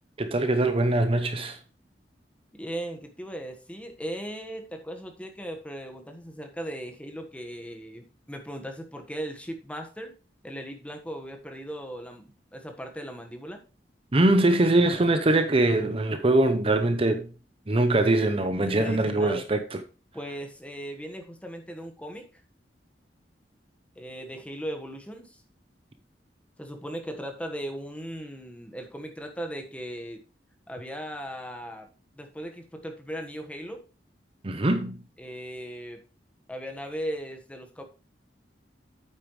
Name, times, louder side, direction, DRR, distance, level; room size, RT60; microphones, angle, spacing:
voice 1, 0.2-1.6 14.1-17.3 17.7-19.6 34.4-35.0, right 2 dB, 30° right, 0.7 m, -22 dB
voice 2, 2.5-10.1 10.4-13.6 18.6-19.4 20.1-22.3 24.0-25.4 26.6-30.2 30.7-31.9 32.1-33.8 35.2-36.0 36.5-37.8, equal, 5° left, 1.4 m, -38 dB
8.9 x 8.4 x 3.2 m
head